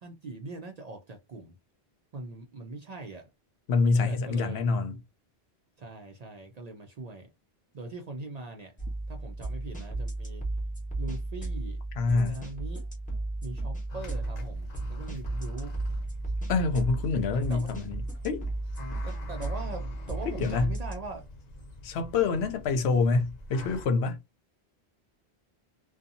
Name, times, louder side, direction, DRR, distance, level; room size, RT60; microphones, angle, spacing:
voice 1, 0.0-1.5 2.1-3.3 3.9-4.6 5.8-7.3 7.7-8.7 9.1-10.4 11.0-11.8 12.0-12.8 13.4-15.7 17.3-17.7 19.0-21.3, right 3 dB, 55° right, 0.5 m, -41 dB
voice 2, 3.7-5.0 12.0-12.4 16.5-18.5 20.3-20.7 21.8-24.2, left 4 dB, 80° left, 0.8 m, -26 dB
sound 1, 8.8-21.0, right 2 dB, 10° left, 0.8 m, -34 dB
sound 2, 13.9-23.9, left 2 dB, 50° left, 0.6 m, -46 dB
2.6 x 2.3 x 2.6 m
omnidirectional pair, 1.1 m